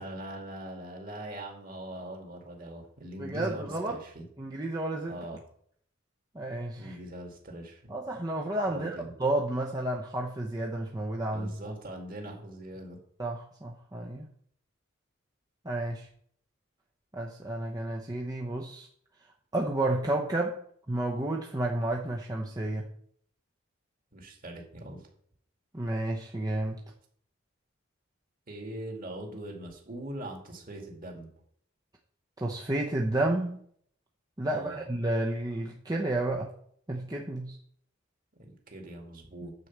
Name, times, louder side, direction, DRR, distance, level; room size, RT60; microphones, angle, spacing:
voice 1, 0.0-4.2 5.1-5.4 6.8-7.9 8.7-9.1 11.3-13.0 24.1-25.1 28.5-31.3 34.5-34.8 38.4-39.5, right 1 dB, 45° right, 1 dB, 2.5 m, -41 dB
voice 2, 3.2-4.0 4.4-5.2 6.3-6.9 7.9-11.5 13.2-14.3 15.6-16.1 17.1-18.9 19.5-20.6 20.9-22.9 25.7-26.8 32.4-33.6 34.4-36.5 36.9-37.6 39.4-39.5, right 1 dB, 20° right, -1 dB, 0.8 m, -31 dB
9.6 x 4.7 x 7.4 m, 0.64 s
head